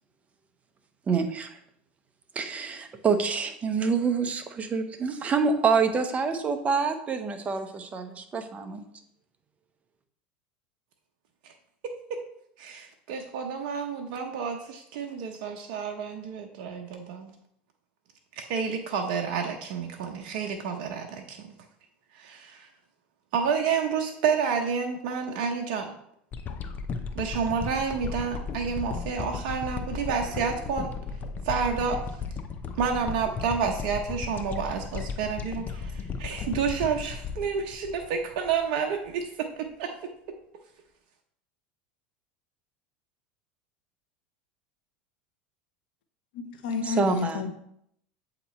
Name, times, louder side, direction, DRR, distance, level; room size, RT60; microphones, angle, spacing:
voice 1, 1.1-1.5 2.3-8.8 46.8-47.4, right 5 dB, 25° right, 7 dB, 0.8 m, -27 dB
voice 2, 12.6-17.3 18.4-21.5 22.1-22.7 23.3-25.9 27.1-30.9 31.4-32.0 32.8-40.1, right 6 dB, 65° right, 2 dB, 0.7 m, -30 dB
sound 1, 26.3-38.6 39.1-39.2, left 5 dB, 35° left, 0.6 m, -35 dB
voice 3, 46.3-47.5, left 5 dB, 80° left, 6 dB, 0.8 m, -30 dB
8.0 x 3.0 x 4.2 m, 0.72 s
hypercardioid pair, 95°, 5 cm